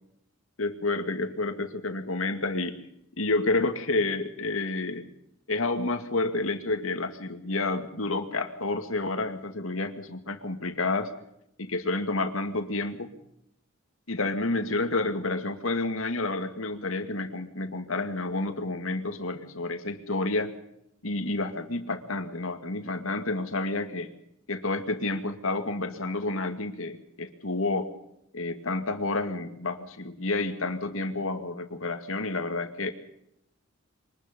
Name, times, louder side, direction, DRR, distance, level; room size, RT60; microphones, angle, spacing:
voice 1, 0.6-2.8 3.2-5.0 5.5-11.1 11.6-13.1 14.1-20.5 21.0-24.1 24.5-27.9 28.3-32.9, left 2 dB, 80° left, 7 dB, 2.4 m, -29 dB
24.0 x 20.0 x 5.4 m, 0.77 s
head